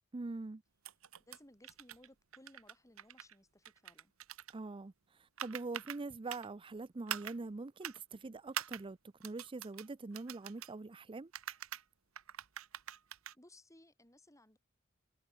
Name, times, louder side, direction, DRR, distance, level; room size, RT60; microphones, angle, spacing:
voice 1, 0.1-0.6 4.5-11.3, right 3 dB, 25° right, 0.5 m, -44 dB
sound 1, 0.9-1.4 1.6-2.1 2.3-3.3 3.7-4.5 5.4-6.0 6.3-6.5 7.1-7.4 7.8-8.0 8.5-8.8 9.2-9.9 10.1-10.7 11.3-11.8 12.2-13.3, right 10 dB, 90° right, 1.3 m, -44 dB
voice 2, 1.3-4.1 13.3-14.6, left 1 dB, 15° left, 7.3 m, -61 dB
head